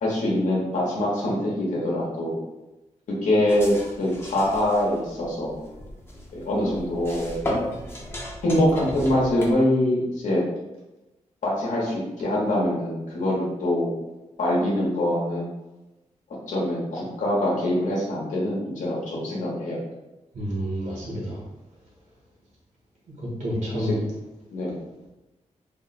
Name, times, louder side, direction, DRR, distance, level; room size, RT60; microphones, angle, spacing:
voice 1, 0.0-2.4 3.2-5.6 6.3-7.4 8.4-10.4 11.4-13.9 14.4-15.5 16.5-19.8 23.7-23.9 24.5-24.7, left 1 dB, 85° left, -5 dB, 1.1 m, -24 dB
sound 1, 3.5-9.5, equal, 20° left, 0.6 m, -35 dB
voice 2, 20.3-21.4 23.2-24.0, equal, 85° right, -5 dB, 1.3 m, -29 dB
3.5 x 2.2 x 4.0 m, 1.0 s
wide cardioid pair, 175°, 13 cm